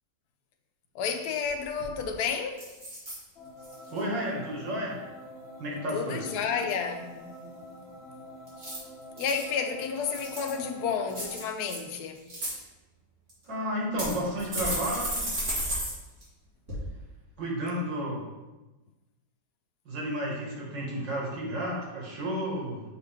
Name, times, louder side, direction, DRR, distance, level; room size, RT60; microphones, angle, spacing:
voice 1, 0.9-2.7 5.9-7.2 9.2-12.2, left 6 dB, 70° left, 1.1 m, -31 dB
sound 1, 1.4-1.5 1.8-2.1 2.6-3.2 3.6-4.0 8.5-9.4 10.0-10.6 11.1-11.8 12.2-12.5 13.3-13.4 14.0-15.9 16.2-16.3 16.7-16.8, right 1 dB, 40° right, 2.4 m, -33 dB
sound 2, 3.3-11.3, equal, 45° left, 1.0 m, -46 dB
voice 2, 3.9-5.0 5.6-6.2 13.4-15.3 17.4-18.2 19.9-22.8, equal, 85° right, 2.4 m, -32 dB
6.8 x 4.9 x 3.4 m
omnidirectional pair, 1.9 m